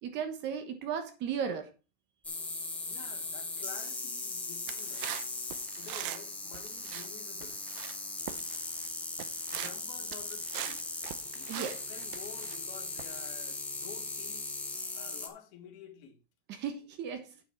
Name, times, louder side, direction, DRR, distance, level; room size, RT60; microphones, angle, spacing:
voice 1, 0.0-1.7 11.5-11.7 16.5-17.4, right 7 dB, 30° right, 1.1 m, -35 dB
sound 1, 2.2-15.3, left 3 dB, 5° left, 1.0 m, -39 dB
voice 2, 2.8-5.1 5.8-7.6 8.2-8.5 9.5-10.9 11.3-14.5 14.9-16.2, left 9 dB, 50° left, 2.7 m, -50 dB
sound 2, 4.7-6.3 6.5-7.1 7.4-8.0 8.3-8.9 9.2-9.8 10.1-12.6 13.0-13.3, right 14 dB, 50° right, 0.8 m, -42 dB
8.9 x 7.2 x 4.4 m
supercardioid pair, 180°, 35 cm